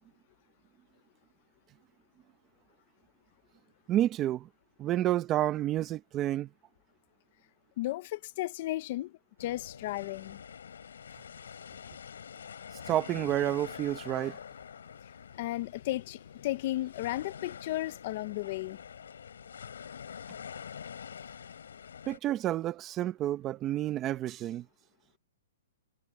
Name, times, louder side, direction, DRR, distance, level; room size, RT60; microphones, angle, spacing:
voice 1, 3.9-4.5 4.8-6.5 12.9-14.4 22.1-24.6, right 13 dB, 20° right, 1.3 m, -30 dB
voice 2, 7.8-10.4 15.4-18.8, left 16 dB, 40° left, 1.2 m, -34 dB
sound 1, 9.4-22.2, left 7 dB, 85° left, 7.9 m, -46 dB
hypercardioid pair, 160°, 0 cm